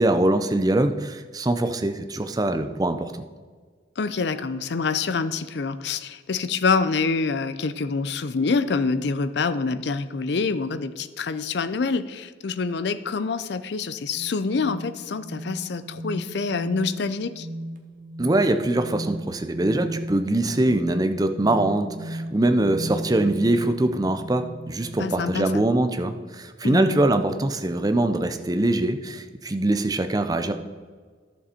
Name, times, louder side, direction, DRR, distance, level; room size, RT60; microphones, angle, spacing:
voice 1, 0.0-3.2 18.2-30.5, right 1 dB, 20° right, 8 dB, 0.5 m, -23 dB
voice 2, 4.0-17.5 25.0-25.6 26.6-27.0, left 4 dB, 60° left, 13 dB, 0.5 m, -26 dB
sound 1, 14.1-25.4, right 1 dB, 45° right, 0.9 m, -37 dB
11.0 x 6.9 x 4.3 m, 1.6 s
head